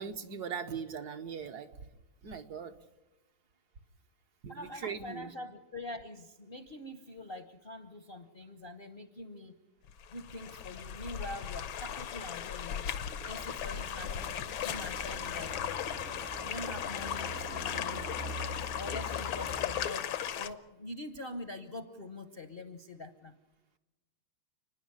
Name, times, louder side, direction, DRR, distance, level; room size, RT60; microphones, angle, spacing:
voice 1, 0.0-1.7 2.2-2.7 4.4-5.3, right 6 dB, 55° right, 6 dB, 1.4 m, -40 dB
voice 2, 4.5-9.6 10.1-14.3 14.6-15.8 16.4-18.0 18.7-23.4, left 2 dB, 40° left, 8 dB, 0.8 m, -44 dB
sound 1, 9.9-20.5, left 9 dB, 80° left, 1.7 m, -37 dB
sound 2, 12.8-19.9, equal, 30° right, 0.7 m, -44 dB
30.0 x 10.0 x 9.8 m, 1.0 s
omnidirectional pair, 2.2 m